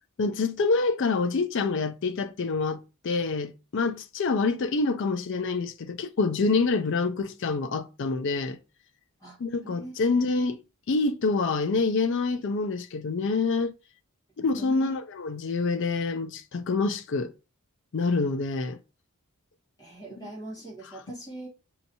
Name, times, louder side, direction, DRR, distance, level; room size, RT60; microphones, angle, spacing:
voice 1, 0.2-8.6 9.4-10.6 10.9-13.7 14.4-17.3 17.9-18.8 20.2-20.3, left 3 dB, 55° left, 0.4 m, -26 dB
voice 2, 14.6-14.9 19.8-21.5, right 1 dB, 15° left, 1.7 m, -42 dB
5.5 x 2.9 x 2.7 m
head